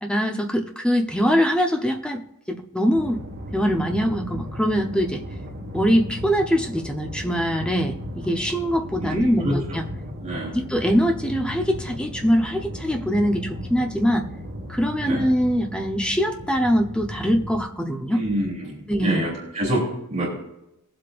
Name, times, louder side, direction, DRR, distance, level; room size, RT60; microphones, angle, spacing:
voice 1, 0.0-2.2 2.5-3.2 3.5-5.2 5.7-9.8 10.5-14.3 14.7-18.2 18.9-19.2, equal, 5° left, 3 dB, 1.0 m, -23 dB
sound 1, 2.9-17.6, equal, 50° right, 1.6 m, -36 dB
voice 2, 9.0-9.6 10.2-10.6 15.0-15.2 18.1-20.3, right 1 dB, 30° right, -5 dB, 3.5 m, -27 dB
22.0 x 7.7 x 2.6 m, 0.86 s
head